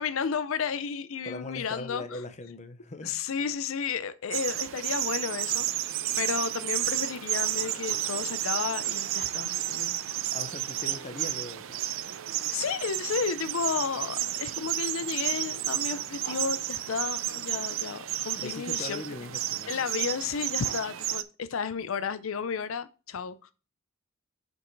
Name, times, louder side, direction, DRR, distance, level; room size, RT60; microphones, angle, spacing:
voice 1, 0.0-2.2 3.0-5.7 6.2-10.0 12.5-19.2 19.7-23.5, left 6 dB, 70° left, 0.5 m, -32 dB
voice 2, 1.2-3.2 10.3-11.8 18.4-19.7, left 2 dB, 35° left, 0.8 m, -40 dB
sound 1, 4.3-21.2, right 12 dB, 65° right, 0.5 m, -32 dB
6.9 x 5.3 x 4.6 m
head